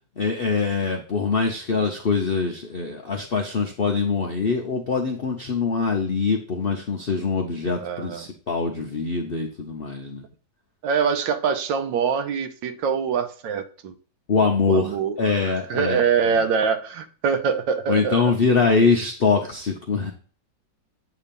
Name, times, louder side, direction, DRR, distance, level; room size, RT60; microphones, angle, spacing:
voice 1, 0.2-10.2 14.3-16.4 17.9-20.1, left 4 dB, 70° left, 0.5 m, -23 dB
voice 2, 7.8-8.3 10.8-13.9 14.7-15.2 15.5-18.3, right 6 dB, 90° right, 1.4 m, -24 dB
8.2 x 2.9 x 5.2 m
omnidirectional pair, 2.0 m